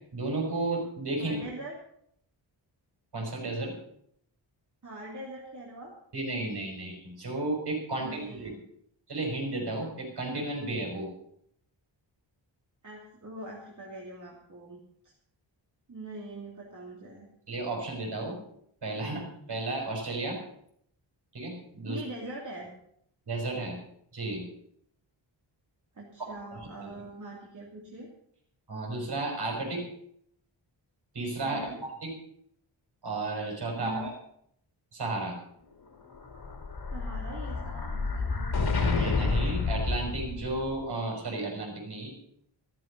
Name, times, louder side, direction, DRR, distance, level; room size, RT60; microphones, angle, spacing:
voice 1, 0.1-1.4 3.1-3.7 6.1-8.6 9.1-11.1 17.5-18.4 18.8-20.4 21.3-22.0 23.3-23.8 24.1-24.4 26.2-26.9 28.7-29.8 31.1-32.1 33.0-34.1 34.9-35.4 38.9-42.1, right 2 dB, 55° right, 0 dB, 5.7 m, -33 dB
voice 2, 1.2-1.7 4.8-5.9 7.9-8.6 12.8-14.8 15.9-17.2 21.9-22.7 25.9-28.1 31.4-31.8 33.7-34.1 36.9-38.6, right 1 dB, 40° right, -4 dB, 3.0 m, -42 dB
Explosion, 36.1-40.7, left 4 dB, 55° left, 3.2 m, -29 dB
13.5 x 13.5 x 5.5 m, 0.70 s
wide cardioid pair, 140°, 47 cm